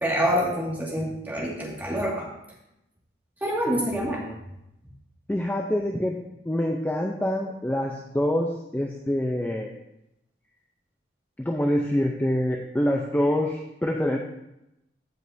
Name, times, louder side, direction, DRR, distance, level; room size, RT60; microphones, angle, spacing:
voice 1, 0.0-2.3 3.4-4.2, equal, 10° right, -4 dB, 2.0 m, -26 dB
voice 2, 3.7-4.4 5.3-6.2 6.5-9.7 11.4-14.2, left 1 dB, 10° left, 0 dB, 0.6 m, -26 dB
15.5 x 5.3 x 2.7 m, 0.86 s
head